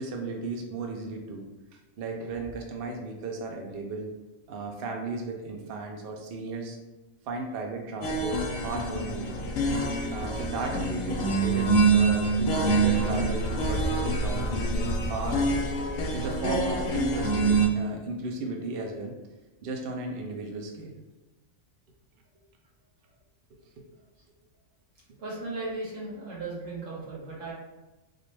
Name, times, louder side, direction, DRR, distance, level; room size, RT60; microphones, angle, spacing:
voice 1, 0.0-1.4 2.0-4.1 4.5-6.8 7.3-9.6 10.1-15.4 16.1-19.2 19.6-20.9 23.8-23.9 25.1-25.2, right 3 dB, 60° right, 1 dB, 0.7 m, -35 dB
sound 1, 8.0-17.7, right 3 dB, 65° left, 0.7 m, -26 dB
voice 2, 25.2-27.5, right 2 dB, 80° right, -5 dB, 1.5 m, -36 dB
3.6 x 2.4 x 3.1 m, 1.1 s
omnidirectional pair, 1.3 m